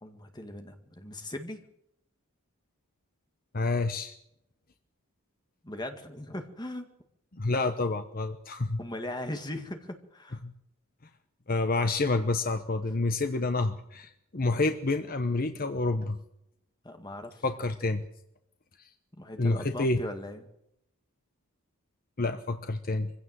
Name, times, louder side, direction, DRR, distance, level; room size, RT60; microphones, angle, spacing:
voice 1, 0.0-1.6 5.6-6.9 8.8-10.4 16.8-17.4 19.2-20.4, left 1 dB, 20° left, 6 dB, 2.0 m, -39 dB
voice 2, 3.5-4.1 7.3-8.8 10.4-10.5 11.5-16.2 17.4-18.0 19.4-20.0 22.2-23.1, left 2 dB, 45° left, 8 dB, 1.0 m, -28 dB
23.0 x 16.0 x 7.6 m, 0.80 s
head